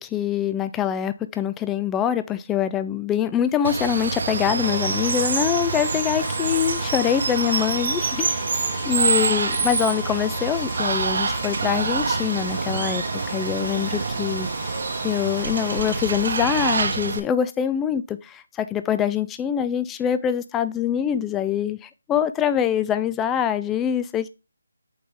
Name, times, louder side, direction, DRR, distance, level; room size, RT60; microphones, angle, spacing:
voice 1, 0.0-8.4 8.8-14.5 15.0-24.3, left 9 dB, 10° left, 0.3 m, -24 dB
Water, 3.6-17.2, right 4 dB, 55° right, 0.9 m, -26 dB
sound 1, 4.6-16.3, left 6 dB, 40° left, 1.9 m, -38 dB
8.6 x 3.9 x 3.4 m
figure-of-eight pair, 160°, 0 cm